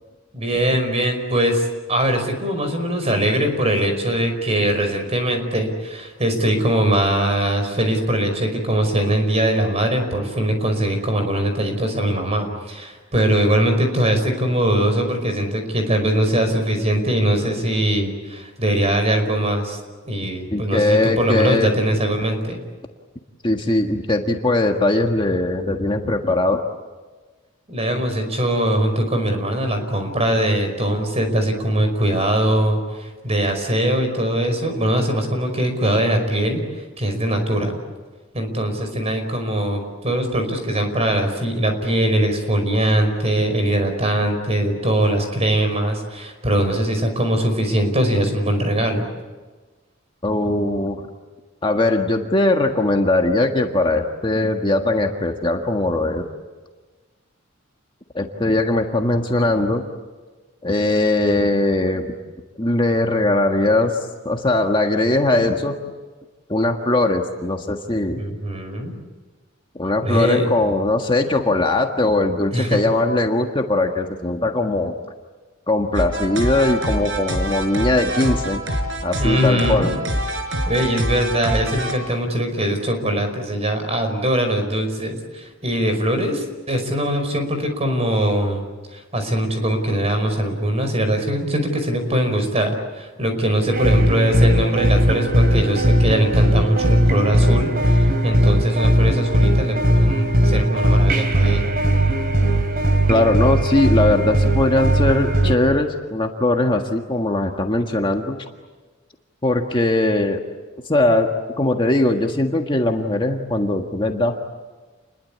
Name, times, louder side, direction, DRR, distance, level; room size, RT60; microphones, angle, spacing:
voice 1, 0.3-19.8 20.0-22.6 27.7-37.8 38.3-49.1 68.2-69.0 70.0-70.4 72.5-72.8 79.2-79.9 80.7-88.6 88.9-101.8, right 1 dB, 30° right, 6 dB, 5.3 m, -21 dB
voice 2, 20.5-21.7 23.4-26.6 50.2-51.1 51.6-56.3 58.1-59.8 60.6-62.1 62.6-65.8 66.5-68.2 69.7-74.9 75.7-78.6 79.0-79.9 103.1-108.4 109.4-110.4 110.8-114.4, left 2 dB, 25° left, 3 dB, 1.6 m, -20 dB
sound 1, 75.9-81.9, right 1 dB, 70° right, 5.3 m, -25 dB
sound 2, 93.7-105.6, equal, 50° right, 3.4 m, -18 dB
29.0 x 21.5 x 8.7 m, 1.3 s
head